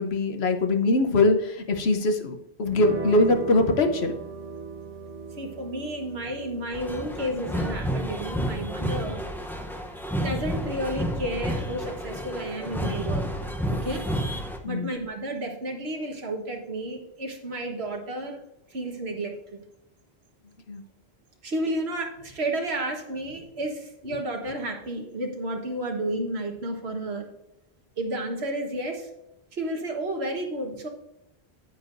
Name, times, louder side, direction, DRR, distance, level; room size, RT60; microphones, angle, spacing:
voice 1, 0.0-4.2 14.6-14.9 20.7-20.8, left 2 dB, 75° left, 5 dB, 1.2 m, -22 dB
sound 1, 2.6-10.4, right 6 dB, 90° right, 1.6 m, -39 dB
voice 2, 5.4-9.2 10.2-13.2 13.7-14.0 14.6-18.4 18.7-19.6 21.4-27.3 28.0-29.1 29.5-30.9, right 1 dB, 75° right, 2 dB, 1.7 m, -31 dB
sound 2, 6.7-14.6, equal, ahead, 0.6 m, -30 dB
9.3 x 9.2 x 2.6 m, 0.84 s
omnidirectional pair, 1.1 m